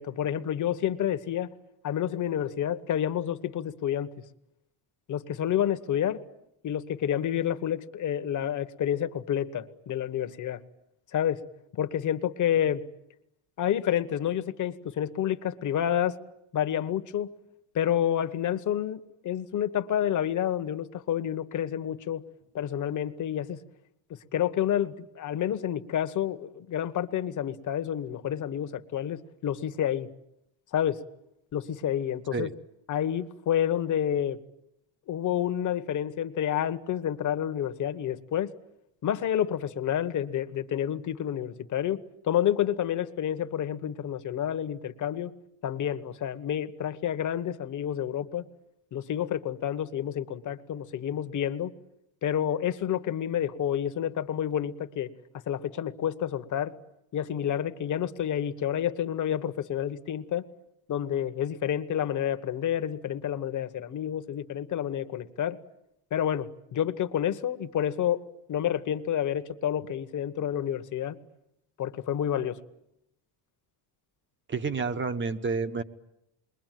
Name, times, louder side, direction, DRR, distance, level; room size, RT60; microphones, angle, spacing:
voice 1, 0.0-1.5 1.8-4.1 5.1-6.2 6.6-10.6 11.1-11.4 11.7-12.8 13.6-16.2 16.5-17.3 17.7-22.2 22.5-23.6 24.3-30.1 30.7-31.0 31.5-32.5 32.9-34.4 35.1-38.5 39.0-45.3 45.6-48.4 48.9-51.7 52.2-55.1 55.5-56.7 57.1-60.4 60.9-65.6 66.1-68.2 68.5-71.1 71.8-72.6, left 10 dB, 40° left, 10 dB, 1.2 m, -29 dB
voice 2, 74.5-75.8, right 4 dB, 25° right, 11 dB, 1.0 m, -29 dB
28.5 x 22.5 x 9.2 m, 0.82 s
cardioid pair, 160°, 47 cm